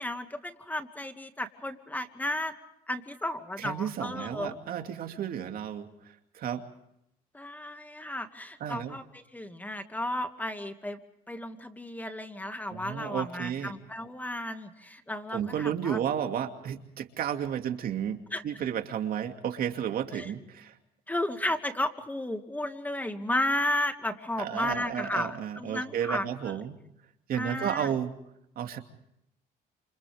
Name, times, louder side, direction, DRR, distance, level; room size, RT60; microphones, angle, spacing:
voice 1, 0.0-2.5 2.9-4.6 7.3-11.0 11.3-16.0 18.3-18.4 20.1-20.3 21.1-26.6 27.3-27.9, left 1 dB, 10° left, 7 dB, 2.2 m, -33 dB
voice 2, 3.6-5.9 6.3-6.6 8.6-9.0 12.7-13.7 15.3-20.7 24.4-26.8 27.3-28.1 28.6-28.8, right 9 dB, 60° right, 5 dB, 2.6 m, -32 dB
30.0 x 28.5 x 3.6 m, 0.80 s
cardioid pair, 110°, 17 cm